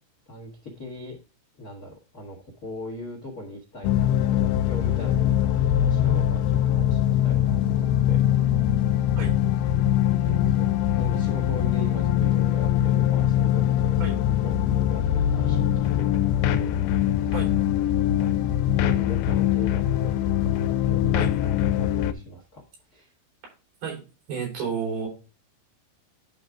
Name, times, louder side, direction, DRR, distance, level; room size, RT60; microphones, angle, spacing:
voice 1, 0.3-1.2 1.6-8.2 10.2-10.7 10.9-14.0 14.3-16.8 17.2-17.4 18.1-18.3 18.8-21.5 21.8-22.6 22.9-23.1, left 1 dB, 65° left, 0 dB, 0.9 m, -40 dB
sound 1, 3.8-22.1, left 11 dB, 85° left, 2.5 m, -22 dB
voice 2, 24.3-25.1, right 6 dB, 75° right, -1 dB, 5.4 m, -30 dB
10.5 x 3.9 x 4.7 m, 0.33 s
omnidirectional pair, 4.5 m